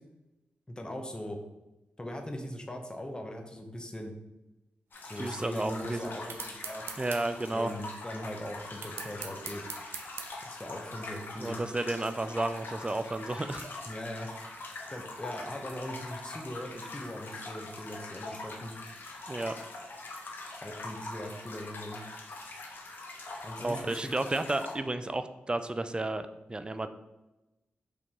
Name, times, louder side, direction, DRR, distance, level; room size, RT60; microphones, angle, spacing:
voice 1, 0.7-1.4 2.0-4.1 5.0-6.8 7.5-9.6 10.4-11.6 13.9-14.3 14.9-18.7 20.6-22.0 23.4-24.1, left 1 dB, 20° left, 3 dB, 0.8 m, -40 dB
sound 1, 4.9-24.7, left 2 dB, 60° left, 0.9 m, -43 dB
voice 2, 5.2-6.1 7.0-7.7 11.4-13.6 19.3-19.6 23.6-26.9, right 2 dB, 25° right, 10 dB, 0.4 m, -32 dB
sound 2, 6.3-7.2 8.8-10.3, right 6 dB, 85° right, 0.5 m, -40 dB
4.7 x 3.0 x 3.6 m, 1.0 s
cardioid pair, 50°, 4 cm